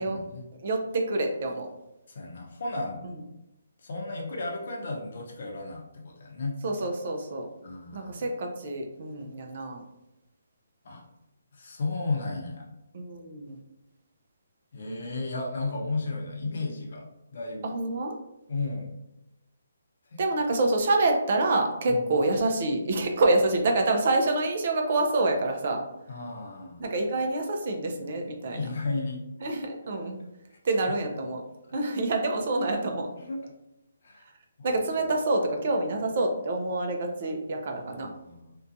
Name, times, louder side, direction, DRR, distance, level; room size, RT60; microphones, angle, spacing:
voice 1, 0.0-0.4 2.1-3.2 3.8-6.6 7.6-8.3 10.8-11.0 11.5-12.7 14.7-17.7 18.5-18.9 20.1-20.2 21.9-22.0 26.1-26.8 28.5-29.2 30.5-30.6 33.2-33.5 34.0-34.2 34.6-34.8 37.7-38.6, left 3 dB, 55° left, 0 dB, 0.6 m, -34 dB
voice 2, 0.6-1.7 6.6-7.5 7.9-9.8 12.9-13.6 17.6-18.2 20.2-25.8 26.8-28.7 29.4-30.2 30.6-31.4 31.7-33.1 34.6-38.1, right 2 dB, 45° right, 3 dB, 0.4 m, -27 dB
2.6 x 2.2 x 2.5 m, 0.91 s
hypercardioid pair, 165°, 0 cm